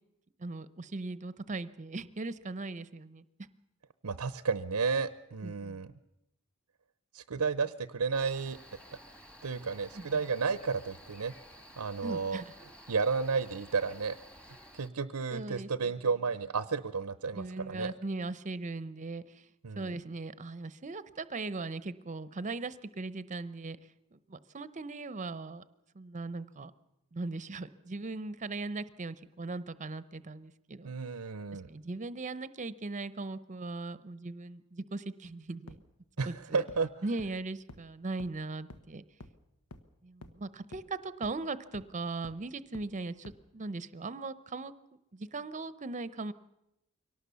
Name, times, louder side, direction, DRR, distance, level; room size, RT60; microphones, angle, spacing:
voice 1, 0.4-3.2 5.4-5.8 9.9-10.2 12.0-12.4 15.3-15.7 17.3-19.4 19.8-23.8 24.1-25.6 25.9-26.7 27.1-30.9 31.7-35.8 36.3-36.6 37.0-39.0 40.0-44.7 45.1-46.3, right 3 dB, 35° right, 16 dB, 0.8 m, -39 dB
voice 2, 4.0-5.9 7.1-8.6 9.4-11.3 11.8-12.4 12.9-14.2 14.7-17.9 19.6-19.9 30.8-31.7 36.2-36.9, right 5 dB, 85° right, 14 dB, 0.7 m, -32 dB
Cricket, 8.1-14.9, equal, 5° left, 1.6 m, -53 dB
sound 1, 35.7-35.8 36.2-36.3 36.7-36.8 37.2-37.3 37.7-37.8 38.2-38.3 38.7-38.8 39.2-39.3 39.7-39.8 40.2-40.3 40.7-40.8 41.2-41.3 41.7-41.8 42.2-42.3 42.7-42.8 43.2-43.3, left 1 dB, 85° left, 1.3 m, -47 dB
23.5 x 18.0 x 7.0 m, 0.87 s
head